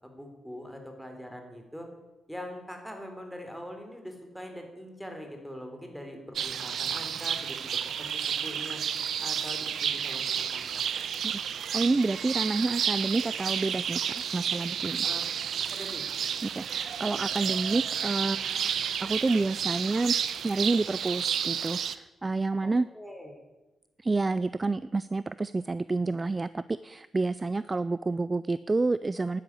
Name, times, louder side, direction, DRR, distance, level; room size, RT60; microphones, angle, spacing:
voice 1, 0.0-1.9 2.3-8.8 9.2-10.6 15.0-15.2 15.6-16.0 22.6-23.4, equal, ahead, 4 dB, 3.5 m, -43 dB
sound 1, 6.3-21.9, right 8 dB, 70° right, 0.9 m, -31 dB
voice 2, 11.7-14.0 14.3-15.1 16.4-18.7 19.0-20.1 20.4-22.9 24.0-29.4, right 3 dB, 25° right, 16 dB, 0.4 m, -29 dB
12.0 x 11.0 x 9.6 m, 1.1 s
cardioid pair, 110°, 0 cm